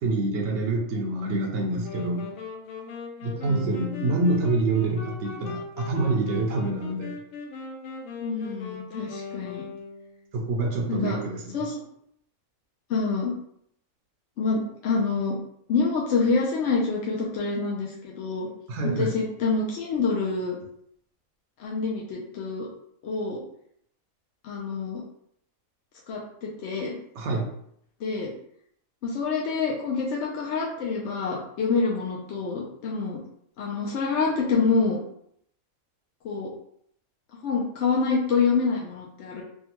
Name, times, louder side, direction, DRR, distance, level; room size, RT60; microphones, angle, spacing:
voice 1, 0.0-2.3 3.2-7.1 10.3-11.7 18.7-19.1 27.1-27.5, right 2 dB, 65° right, 0 dB, 0.8 m, -26 dB
sound 1, 1.8-10.3, left 4 dB, 90° left, 1.0 m, -39 dB
voice 2, 3.5-4.2 8.2-9.6 10.9-11.2 11.5-11.8 12.9-13.3 14.4-15.4 15.7-18.5 18.8-20.6 21.6-22.7 23.0-23.4 24.4-25.0 26.1-26.9 28.0-28.3 29.0-33.2 33.6-35.0 36.2-36.5 37.4-39.4, left 4 dB, 65° left, -3 dB, 0.8 m, -27 dB
3.4 x 2.2 x 2.9 m, 0.70 s
omnidirectional pair, 1.4 m